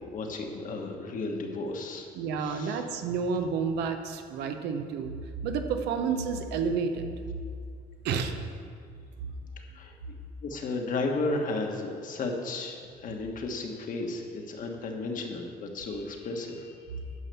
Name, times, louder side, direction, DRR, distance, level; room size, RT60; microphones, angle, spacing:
voice 1, 0.0-2.1 2.4-2.8 9.7-9.9 10.4-16.8, left 3 dB, 50° left, 3 dB, 1.4 m, -33 dB
voice 2, 2.1-5.1 5.4-7.1 8.0-8.3, right 5 dB, 85° right, 6 dB, 0.9 m, -30 dB
9.8 x 5.7 x 6.8 m, 2.2 s
cardioid pair, 110°, 17 cm